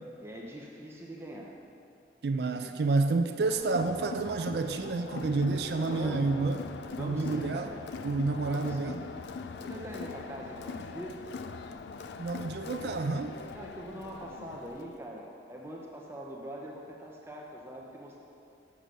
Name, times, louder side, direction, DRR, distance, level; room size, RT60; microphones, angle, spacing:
voice 1, 0.2-1.5 2.6-2.8 5.8-6.3 6.9-7.8 8.4-9.0 9.6-11.2 13.5-18.2, right 1 dB, 15° right, -2 dB, 0.6 m, -43 dB
voice 2, 2.2-6.6 7.0-7.7 8.0-9.0 12.2-13.4, right 3 dB, 65° right, 7 dB, 0.4 m, -29 dB
Crowd, 3.4-15.0, left 4 dB, 75° left, 0.4 m, -41 dB
6.8 x 6.1 x 6.3 m, 2.5 s
head